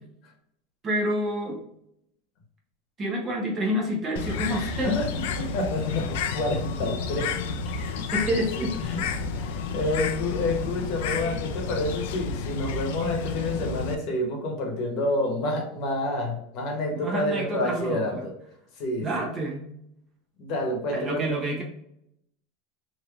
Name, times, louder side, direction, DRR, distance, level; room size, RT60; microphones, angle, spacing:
voice 1, 0.8-1.6 3.0-5.0 7.8-8.8 16.9-18.2 19.0-19.7 20.9-21.6, equal, 25° right, -1 dB, 0.9 m, -28 dB
Bird, 4.2-14.0, left 5 dB, 75° left, 0.4 m, -31 dB
voice 2, 4.8-7.3 7.6-8.1 8.8-18.3 18.8-19.1 20.4-21.2, left 1 dB, 50° left, 1 dB, 1.0 m, -29 dB
3.1 x 2.8 x 2.4 m, 0.77 s
supercardioid pair, 140°, 0 cm